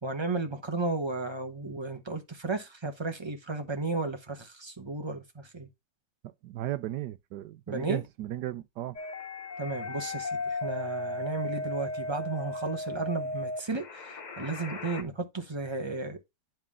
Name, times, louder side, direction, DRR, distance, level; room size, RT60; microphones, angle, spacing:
voice 1, 0.0-5.7 7.7-8.0 9.6-16.2, right 3 dB, 20° right, 0.8 m, -34 dB
voice 2, 6.4-9.0, right 14 dB, 75° right, 1.1 m, -35 dB
sound 1, 8.9-15.0, left 2 dB, 60° left, 0.4 m, -36 dB
10.5 x 3.7 x 3.5 m
omnidirectional pair, 2.0 m